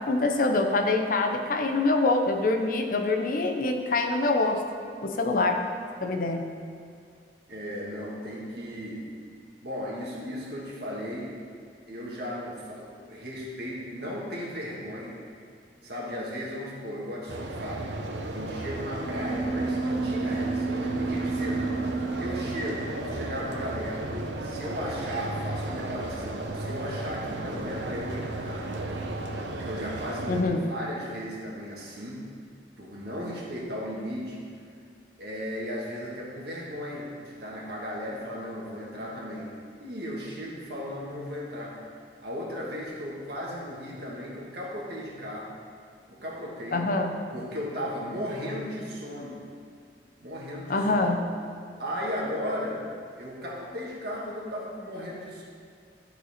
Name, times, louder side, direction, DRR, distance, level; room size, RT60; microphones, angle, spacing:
voice 1, 0.0-4.7 5.0-5.7 6.0-6.5 30.3-30.7 46.7-47.2 50.7-51.3, left 2 dB, 50° left, 4 dB, 0.7 m, -25 dB
voice 2, 7.5-9.0 9.6-11.3 11.9-15.2 15.8-17.9 18.3-21.8 22.2-24.0 24.4-28.7 29.5-32.3 32.8-34.4 35.2-39.5 39.8-41.8 42.2-45.5 46.1-46.9 47.3-49.4 50.2-51.1 51.8-52.8 53.2-55.4, equal, 60° right, -4 dB, 1.6 m, -36 dB
sound 1, 17.3-30.4, right 2 dB, 75° right, 0.7 m, -34 dB
sound 2, 19.0-24.9, right 3 dB, 25° right, 0.4 m, -32 dB
12.0 x 4.3 x 4.2 m, 2.3 s
head